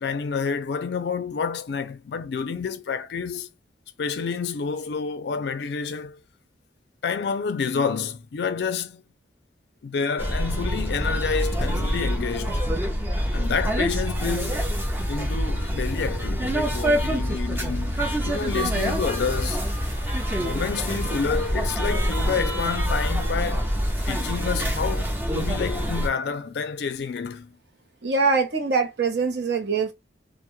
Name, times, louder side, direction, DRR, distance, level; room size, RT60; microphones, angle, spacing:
voice 1, 0.0-3.5 4.0-6.2 7.0-9.0 9.8-12.6 13.3-14.6 15.1-19.7 20.4-23.7 24.1-27.5, left 5 dB, 60° left, 0.4 m, -29 dB
sound 1, 10.2-26.1, equal, 10° right, 0.5 m, -26 dB
sound 2, 11.6-20.4 20.8-20.9, left 1 dB, 15° left, 0.8 m, -44 dB
voice 2, 28.0-29.9, right 4 dB, 60° right, 0.6 m, -23 dB
2.2 x 2.0 x 2.9 m
head